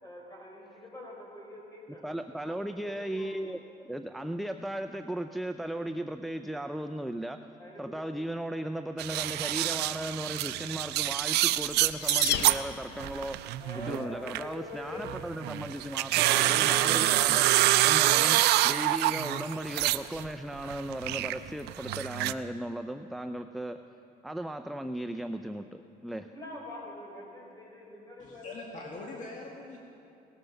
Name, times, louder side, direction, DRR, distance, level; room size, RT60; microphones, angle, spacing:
voice 1, 0.0-2.2 2.4-3.4 7.6-8.0 13.6-15.0 16.2-16.5 18.3-18.5 26.3-29.1, left 2 dB, 20° left, -2 dB, 4.8 m, -45 dB
voice 2, 2.0-7.4 7.8-13.4 13.8-17.5 17.8-23.8 24.2-26.3, right 1 dB, ahead, 7 dB, 0.4 m, -36 dB
sound 1, 9.0-12.6 13.0-14.5 15.0-20.3 20.5-22.3, right 16 dB, 80° right, 0.4 m, -26 dB
sound 2, 11.6-13.3, left 8 dB, 75° left, 0.8 m, -34 dB
voice 3, 28.2-29.8, left 2 dB, 45° left, 0 dB, 1.6 m, -43 dB
18.0 x 13.5 x 5.3 m, 2.8 s
cardioid pair, 110°, 17 cm